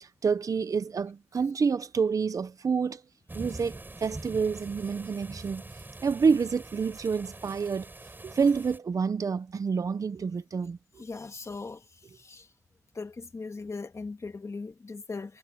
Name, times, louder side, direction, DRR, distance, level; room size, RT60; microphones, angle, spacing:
voice 1, 0.0-3.0 3.3-5.6 6.0-7.9 8.2-11.0, right 5 dB, 80° right, 0.9 m, -28 dB
sound 1, 3.3-8.8, right 2 dB, 35° right, 4.8 m, -44 dB
voice 2, 11.0-12.5 12.9-15.4, left 4 dB, 60° left, 2.0 m, -39 dB
cardioid pair, 50°, 6 cm